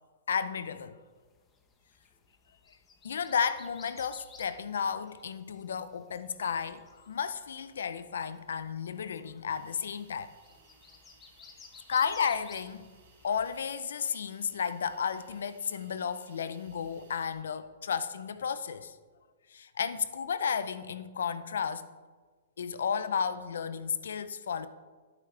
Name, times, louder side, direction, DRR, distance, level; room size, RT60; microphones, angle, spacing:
voice 1, 0.3-1.0 3.0-10.3 11.9-12.9 13.2-19.0 19.5-21.9 22.6-24.7, left 7 dB, 80° left, 0.6 m, -33 dB
sound 1, 1.2-13.7, left 5 dB, 15° left, 1.0 m, -57 dB
Hiss, 9.5-17.3, right 5 dB, 65° right, 2.1 m, -63 dB
10.5 x 8.8 x 3.4 m
hypercardioid pair, 145°, 0 cm